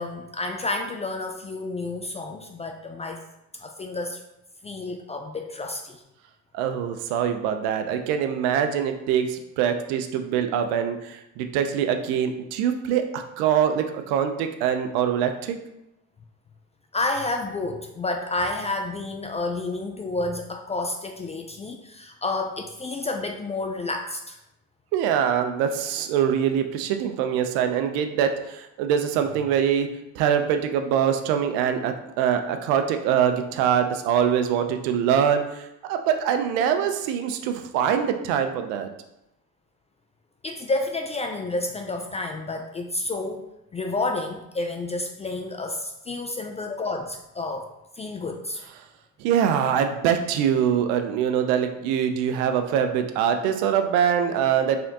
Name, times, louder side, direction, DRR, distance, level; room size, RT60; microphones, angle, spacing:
voice 1, 0.0-3.2 3.6-4.2 4.6-6.0 16.9-24.4 40.4-43.4 43.7-47.6 48.0-48.6, left 2 dB, 20° left, 3 dB, 0.4 m, -30 dB
voice 2, 6.5-15.6 24.9-38.9 49.2-54.8, right 8 dB, 85° right, 7 dB, 0.6 m, -24 dB
4.2 x 3.7 x 2.8 m, 0.86 s
supercardioid pair, 85°, 32 cm